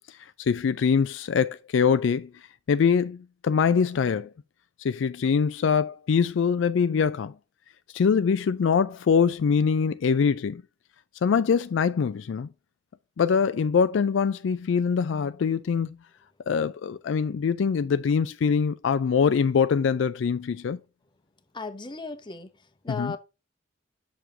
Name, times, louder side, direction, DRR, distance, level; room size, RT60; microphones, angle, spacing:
voice 1, 0.4-2.3 2.7-4.3 4.8-7.3 7.9-10.6 11.2-12.5 13.2-15.9 16.5-20.8 22.9-23.1, left 6 dB, 70° left, 0.4 m, -23 dB
voice 2, 21.5-23.2, left 4 dB, 25° left, 0.8 m, -36 dB
7.0 x 6.2 x 2.8 m
head